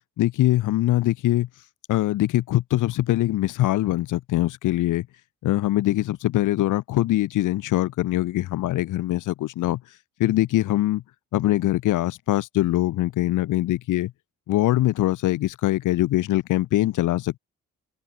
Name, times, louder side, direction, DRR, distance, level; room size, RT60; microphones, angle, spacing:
voice 1, 0.2-1.5 1.9-5.1 5.4-9.8 10.2-11.0 11.3-14.1 14.5-17.4, left 15 dB, 85° left, 2.8 m, -23 dB
cardioid pair, 90°, 30 cm